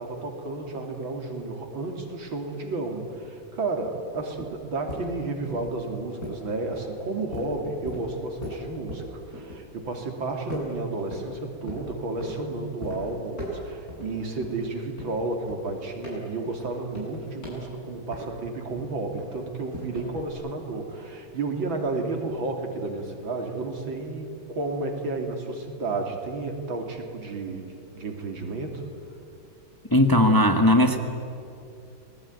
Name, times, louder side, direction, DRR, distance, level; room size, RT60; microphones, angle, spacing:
voice 1, 0.0-28.9, right 3 dB, 85° right, 3 dB, 3.6 m, -32 dB
sound 1, 4.0-10.1 10.5-11.3 11.7-12.4 12.8-13.0 13.3-14.1 14.4-18.5 18.8-20.3, left 1 dB, 45° left, 8.7 m, -39 dB
voice 2, 29.9-31.0, left 1 dB, 10° left, 6 dB, 1.3 m, -18 dB
29.5 x 20.5 x 9.6 m, 2.7 s
omnidirectional pair, 2.1 m